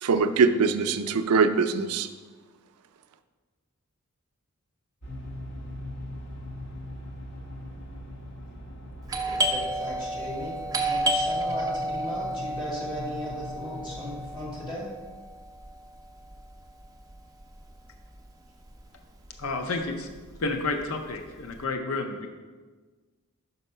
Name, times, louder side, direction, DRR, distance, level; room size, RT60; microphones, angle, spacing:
voice 1, 0.0-2.1, right 5 dB, 85° right, 10 dB, 0.4 m, -22 dB
sound 1, 5.0-14.7, left 1 dB, 50° left, 1.1 m, -41 dB
Doorbell, 9.1-18.5 18.7-18.8 19.4-19.8 20.1-21.5, right 1 dB, 15° right, 0.5 m, -31 dB
voice 2, 9.2-10.5 10.8-14.9, equal, 20° left, -6 dB, 2.1 m, -37 dB
voice 3, 19.4-20.1 20.4-22.3, left 3 dB, 65° left, 5 dB, 0.6 m, -30 dB
5.5 x 5.3 x 5.4 m, 1.4 s
head